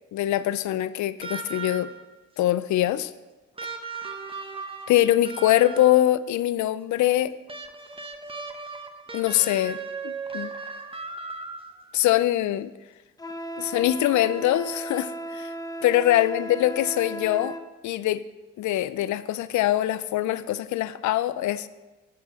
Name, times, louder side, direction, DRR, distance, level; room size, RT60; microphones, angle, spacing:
voice 1, 0.1-1.9 2.4-3.1 3.6-3.7 4.9-7.3 9.1-9.8 10.0-10.5 11.9-12.7 13.6-15.5 15.8-17.6 17.8-18.2 18.6-21.7, left 13 dB, 70° left, 15 dB, 0.5 m, -23 dB
sound 1, 1.2-2.2 3.6-6.1 7.5-11.9 13.3-13.4, right 4 dB, 20° right, 0.9 m, -37 dB
Wind instrument woodwind instrument, 13.2-17.7, right 1 dB, 15° left, 0.6 m, -36 dB
9.9 x 6.0 x 4.7 m, 1.2 s
cardioid pair, 90°, 30 cm